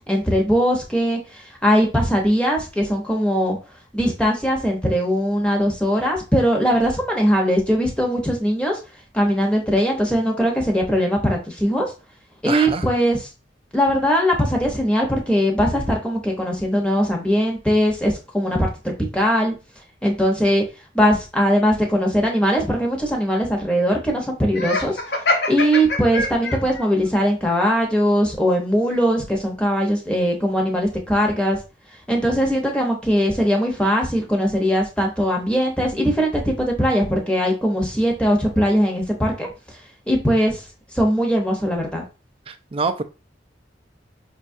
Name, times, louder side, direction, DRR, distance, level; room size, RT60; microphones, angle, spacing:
voice 1, 0.1-3.6 3.9-8.8 9.1-11.9 12.4-13.3 13.7-19.5 20.0-20.6 20.9-25.0 25.5-31.6 32.1-39.5 40.1-40.6 40.9-42.0, equal, 5° left, 0.8 m, -20 dB
voice 2, 12.5-12.8 42.5-43.0, right 4 dB, 30° right, 0.3 m, -25 dB
Laughter, 24.5-26.8, left 2 dB, 60° left, 0.8 m, -24 dB
5.2 x 2.3 x 2.6 m
head